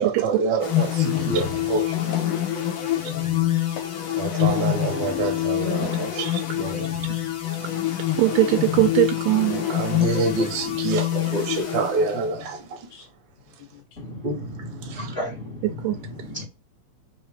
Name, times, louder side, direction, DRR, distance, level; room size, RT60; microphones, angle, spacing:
voice 1, 0.0-1.9 4.2-6.2 6.6-6.9 9.5-12.6 14.2-14.4, right 4 dB, 55° right, 1.3 m, -26 dB
sound 1, 0.6-12.5, left 12 dB, 65° left, 1.3 m, -26 dB
voice 2, 1.9-2.4 3.0-3.3 3.6-3.9 4.1-4.5 4.8-5.0 6.4-7.2 7.9-8.0 11.2-11.5 12.4-12.5 12.9-13.1 13.6-13.8, left 9 dB, 80° left, 2.0 m, -43 dB
voice 3, 8.2-9.6 15.8-16.0, right 15 dB, 85° right, 2.1 m, -20 dB
voice 4, 14.0-16.5, left 1 dB, 40° left, 0.9 m, -35 dB
4.8 x 2.8 x 3.4 m
omnidirectional pair, 3.6 m